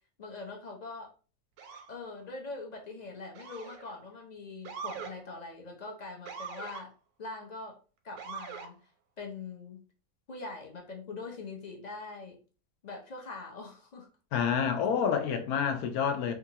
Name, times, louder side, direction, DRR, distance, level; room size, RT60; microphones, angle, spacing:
voice 1, 0.2-1.1 1.9-6.9 7.2-7.8 8.0-8.8 9.2-9.8 10.3-12.4 12.8-14.1, left 3 dB, 50° left, 0.5 m, -43 dB
Motor vehicle (road) / Siren, 1.6-1.9 3.3-3.9 4.6-5.1 6.2-6.8 8.2-8.7, right 6 dB, 85° right, 1.1 m, -42 dB
voice 2, 14.3-16.3, left 7 dB, 85° left, 1.1 m, -28 dB
3.8 x 2.4 x 2.7 m
omnidirectional pair, 1.5 m